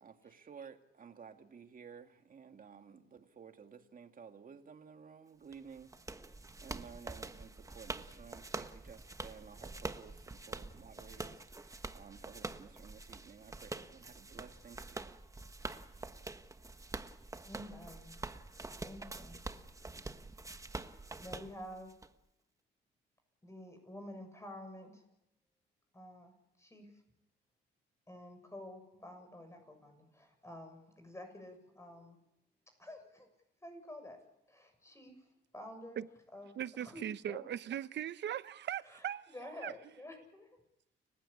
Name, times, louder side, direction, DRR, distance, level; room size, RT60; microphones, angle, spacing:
voice 1, 0.0-6.3 6.6-15.2, right 6 dB, 45° right, 2.2 m, -54 dB
sound 1, 5.5-22.1, right 2 dB, 15° right, 1.3 m, -46 dB
voice 2, 17.3-18.1 18.8-19.4 21.0-21.9 23.4-25.0 25.9-26.3 26.6-26.9 28.1-32.2 32.8-33.3 33.6-34.2 34.5-35.2 35.5-36.0 36.3-37.4 38.9-39.0 39.3-40.5, left 1 dB, 15° left, 7.0 m, -50 dB
voice 3, 36.6-39.3 39.6-39.7, right 10 dB, 60° right, 0.9 m, -39 dB
30.0 x 15.5 x 8.7 m
cardioid pair, 90°, 20 cm